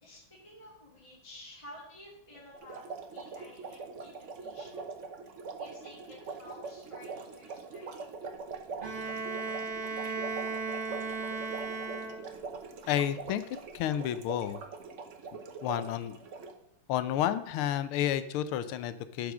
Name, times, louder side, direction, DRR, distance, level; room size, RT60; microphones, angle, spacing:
voice 1, 0.0-2.8 3.1-4.8 5.6-8.1, left 1 dB, 15° left, -5 dB, 2.0 m, -52 dB
sound 1, 2.5-16.5, right 4 dB, 50° right, 1.0 m, -43 dB
Bowed string instrument, 8.8-12.6, right 4 dB, 25° right, 1.6 m, -36 dB
voice 2, 12.9-13.4 13.7-14.6 15.6-16.2 16.9-19.3, left 11 dB, 80° left, 12 dB, 1.5 m, -30 dB
11.5 x 4.8 x 6.1 m, 0.75 s
omnidirectional pair, 2.4 m